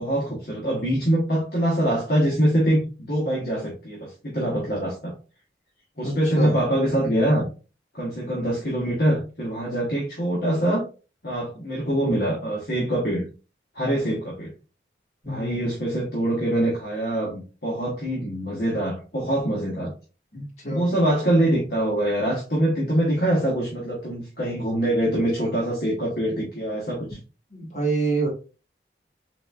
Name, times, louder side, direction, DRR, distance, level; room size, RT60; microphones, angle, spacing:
voice 1, 0.0-5.1 6.0-7.4 7.9-10.8 11.2-13.3 13.7-14.5 15.2-19.9 20.7-27.2, right 1 dB, 60° left, -4 dB, 1.1 m, -24 dB
voice 2, 6.0-6.6 15.2-15.6 20.3-20.9 27.5-28.3, right 3 dB, 40° left, -3 dB, 1.7 m, -27 dB
4.0 x 3.4 x 2.4 m, 0.33 s
head